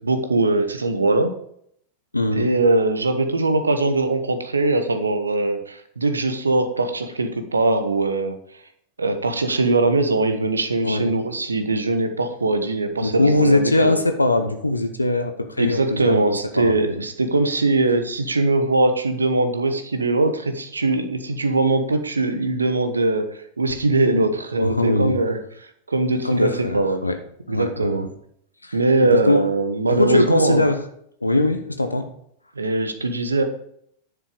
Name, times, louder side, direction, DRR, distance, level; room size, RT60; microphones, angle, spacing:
voice 1, 0.0-1.4 2.3-8.4 9.0-14.0 15.6-25.4 25.9-27.0 27.5-28.0 28.7-30.7 32.6-33.4, right 2 dB, 75° right, 8 dB, 1.2 m, -21 dB
voice 2, 2.1-2.5 10.8-11.1 13.0-17.0 24.1-24.3 24.6-25.2 26.2-27.2 27.5-28.1 28.6-29.5 29.8-30.8 31.2-32.1, left 2 dB, 85° left, 8 dB, 0.9 m, -21 dB
10.5 x 7.5 x 5.0 m, 0.69 s
figure-of-eight pair, 90°, 0 cm